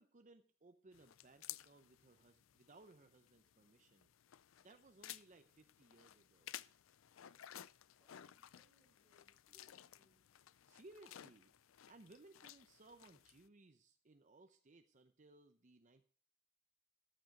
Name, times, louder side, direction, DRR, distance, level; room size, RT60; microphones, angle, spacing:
voice 1, 0.0-4.1 4.6-6.5 10.7-11.5 11.9-16.0, right 2 dB, 40° right, 7 dB, 0.7 m, -63 dB
sound 1, 0.9-13.5, left 12 dB, 85° left, 0.4 m, -57 dB
voice 2, 8.0-10.3, left 1 dB, 5° right, 1 dB, 2.9 m, -75 dB
13.5 x 9.0 x 5.2 m, 0.43 s
head